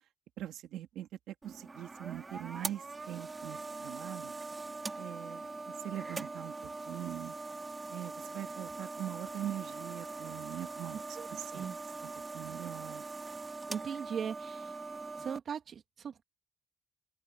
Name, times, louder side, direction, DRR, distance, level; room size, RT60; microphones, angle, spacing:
voice 1, 0.4-4.3 5.0-5.5 5.8-7.3 7.9-11.7 12.0-13.1, right 12 dB, 85° right, 2.7 m, -42 dB
sound 1, 1.4-15.4, right 3 dB, 25° right, 3.6 m, -42 dB
voice 2, 10.9-11.3 11.5-11.8 13.7-14.8 15.2-16.2, right 7 dB, 55° right, 2.8 m, -39 dB
open air
cardioid pair, 90°, 0 cm